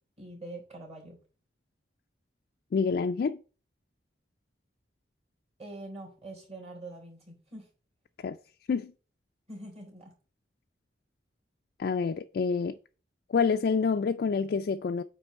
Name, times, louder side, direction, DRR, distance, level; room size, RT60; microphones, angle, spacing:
voice 1, 0.2-1.2 5.6-7.7 9.5-10.1, right 2 dB, 35° right, 3.5 m, -44 dB
voice 2, 2.7-3.4 8.2-8.4 8.7-8.9 11.8-12.8 13.3-15.0, left 5 dB, 60° left, 0.3 m, -27 dB
8.9 x 3.2 x 5.2 m
head